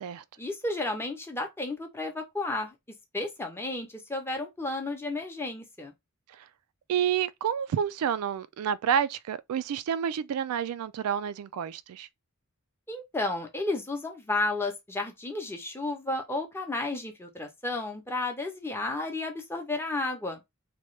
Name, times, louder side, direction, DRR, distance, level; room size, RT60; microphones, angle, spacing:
voice 1, 0.4-2.7 3.1-5.9 12.9-20.4, left 2 dB, 10° left, 0.6 m, -32 dB
voice 2, 6.9-12.1, right 8 dB, 80° right, 0.3 m, -29 dB
2.9 x 2.3 x 3.1 m
head